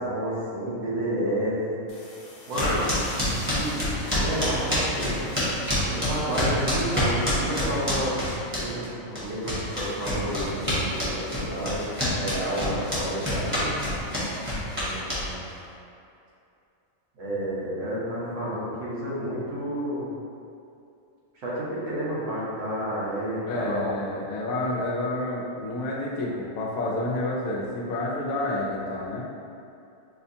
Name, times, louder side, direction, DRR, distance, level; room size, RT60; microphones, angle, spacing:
voice 1, 0.0-1.8 2.5-2.9 3.2-5.2 5.8-8.2 8.6-11.8 12.1-13.8 14.7-15.5 17.2-20.1 21.4-23.9, right 1 dB, 70° right, -7 dB, 1.2 m, -30 dB
sound 1, 1.9-8.5, left 1 dB, 45° left, 0.7 m, -41 dB
sound 2, 2.5-8.9 9.1-15.5, left 1 dB, 10° right, 0.8 m, -27 dB
voice 2, 23.5-29.3, left 1 dB, 90° left, -3 dB, 1.1 m, -29 dB
4.8 x 2.2 x 2.7 m, 2.6 s
omnidirectional pair, 1.4 m